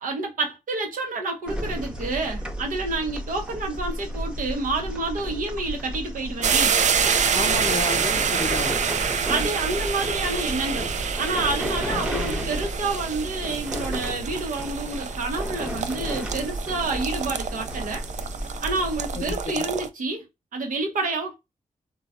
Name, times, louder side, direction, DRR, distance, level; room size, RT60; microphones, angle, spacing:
voice 1, 0.0-6.8 9.3-10.9 11.2-18.0 18.6-20.3 20.5-21.4, right 3 dB, 80° right, 0.9 m, -29 dB
sound 1, 1.5-19.4, equal, 5° right, 0.8 m, -33 dB
sound 2, 6.4-19.9, right 7 dB, 60° right, 0.4 m, -27 dB
voice 2, 7.3-8.8 11.9-12.0 19.2-19.7, left 4 dB, 50° left, 0.5 m, -32 dB
3.2 x 2.2 x 2.4 m
cardioid pair, 55°, 14 cm